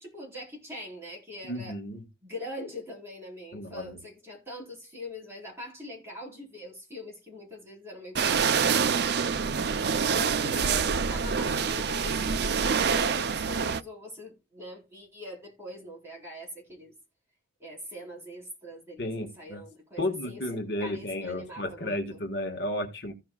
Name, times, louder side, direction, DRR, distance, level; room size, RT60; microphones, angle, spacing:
voice 1, 0.0-1.8 2.2-9.7 10.0-16.9 17.6-22.2, left 1 dB, 15° right, 4.2 m, -43 dB
voice 2, 1.4-2.1 3.5-4.0 19.0-19.6 20.0-23.1, left 1 dB, 60° left, 1.6 m, -33 dB
sound 1, 8.1-13.8, right 6 dB, 55° right, 0.5 m, -26 dB
15.5 x 5.8 x 2.3 m
head